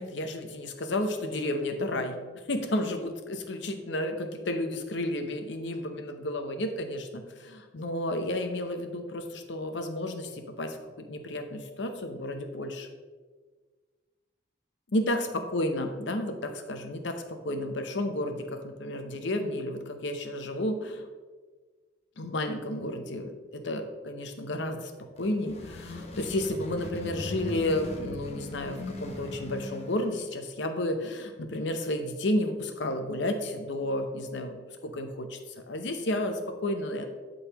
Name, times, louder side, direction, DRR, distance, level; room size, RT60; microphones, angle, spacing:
voice 1, 0.0-2.2 2.5-12.9 14.9-21.1 22.2-34.6 34.8-35.4 35.7-37.1, left 1 dB, 80° left, 6 dB, 0.7 m, -32 dB
sound 1, 25.0-30.3, left 2 dB, 35° left, 0.8 m, -39 dB
11.5 x 3.9 x 3.0 m, 1.4 s
head